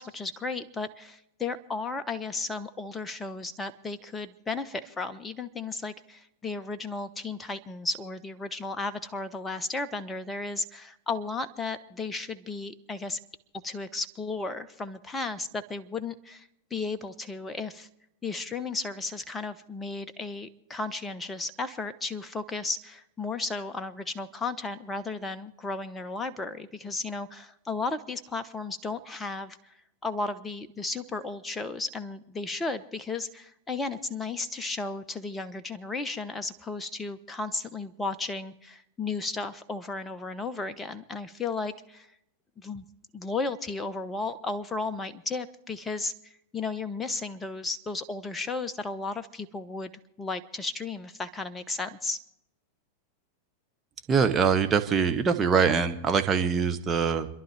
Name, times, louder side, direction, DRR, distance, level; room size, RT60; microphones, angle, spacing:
voice 1, 0.0-13.2 13.6-17.9 18.2-29.7 30.0-42.1 42.6-42.8 43.1-49.9 50.2-52.2, left 3 dB, 15° left, 11 dB, 1.0 m, -34 dB
voice 2, 54.1-57.3, right 6 dB, 20° right, 6 dB, 1.4 m, -23 dB
29.5 x 11.0 x 3.4 m, 0.81 s
figure-of-eight pair, 90°, 0 cm